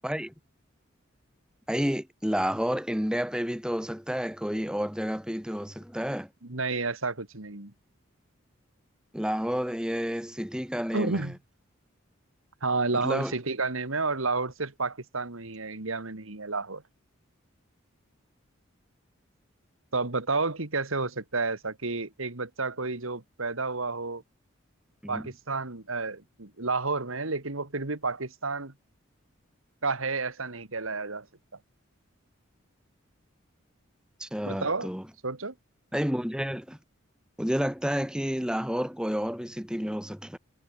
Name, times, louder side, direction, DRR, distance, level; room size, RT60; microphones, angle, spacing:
voice 1, 0.0-0.3 1.7-6.3 9.1-11.3 12.9-13.3 25.0-25.2 34.2-35.0 35.9-36.8 37.4-40.4, equal, 5° right, 1.8 m, -30 dB
voice 2, 6.4-7.7 10.9-11.4 12.6-16.8 19.9-24.2 25.1-28.7 29.8-31.3 34.4-34.9 35.2-35.5, right 3 dB, 80° right, 2.2 m, -31 dB
head